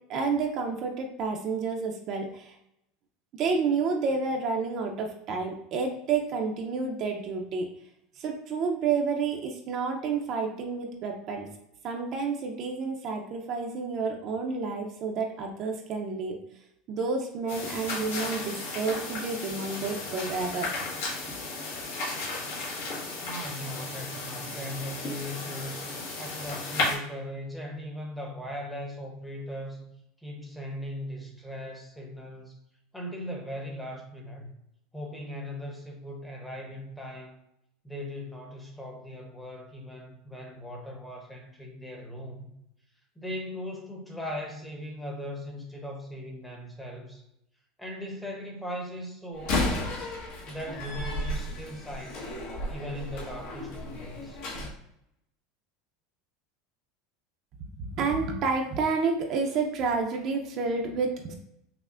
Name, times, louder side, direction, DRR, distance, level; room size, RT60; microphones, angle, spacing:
voice 1, 0.1-2.5 3.3-7.6 8.2-11.5 11.8-16.4 16.9-20.7 57.6-61.3, right 4 dB, 45° right, 2 dB, 0.5 m, -30 dB
sound 1, 17.5-27.0, left 3 dB, 90° left, 1.5 m, -34 dB
voice 2, 23.2-25.9 26.2-29.9 30.2-32.6 32.9-34.5 34.9-37.4 37.8-42.5 43.2-47.2 47.8-49.7 50.5-52.3 52.7-54.4, equal, 5° left, 0 dB, 0.8 m, -39 dB
Slam, 49.3-54.7, left 1 dB, 65° left, 1.1 m, -33 dB
5.5 x 2.0 x 2.4 m, 0.80 s
supercardioid pair, 140°, 0 cm